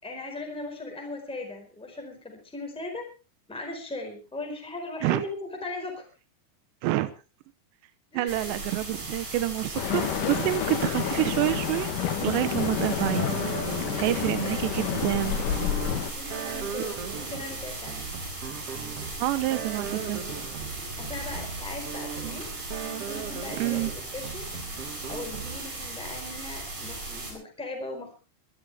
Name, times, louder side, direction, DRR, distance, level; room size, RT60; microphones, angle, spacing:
voice 1, 0.0-3.1 3.5-6.0 8.1-8.6 14.1-15.0 16.1-18.1 20.8-22.5 22.8-24.5 25.1-28.1, left 2 dB, ahead, 3 dB, 4.0 m, -39 dB
voice 2, 8.1-11.9 12.2-13.3 14.0-15.4 19.2-20.2 22.2-22.4 23.6-23.9, right 16 dB, 85° right, 13 dB, 3.1 m, -27 dB
sound 1, 8.3-27.3, right 2 dB, 40° right, 8.1 m, -37 dB
sound 2, 9.7-16.1, left 9 dB, 60° left, 2.6 m, -29 dB
sound 3, 13.0-25.9, right 8 dB, 60° right, 1.6 m, -39 dB
23.5 x 13.0 x 3.5 m, 0.33 s
omnidirectional pair, 4.8 m